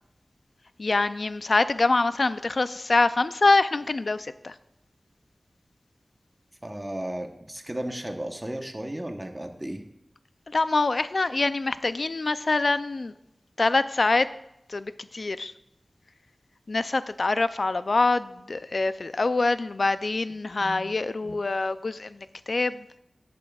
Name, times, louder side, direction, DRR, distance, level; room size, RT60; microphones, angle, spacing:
voice 1, 0.8-4.5 10.5-13.1 13.6-14.3 14.7-15.5 16.7-23.0, left 3 dB, 60° left, 13 dB, 0.4 m, -25 dB
voice 2, 6.6-9.8 20.6-20.9 21.2-21.4, right 1 dB, 20° right, 5 dB, 0.9 m, -34 dB
13.0 x 8.5 x 2.4 m, 0.82 s
wide cardioid pair, 80°, 0 cm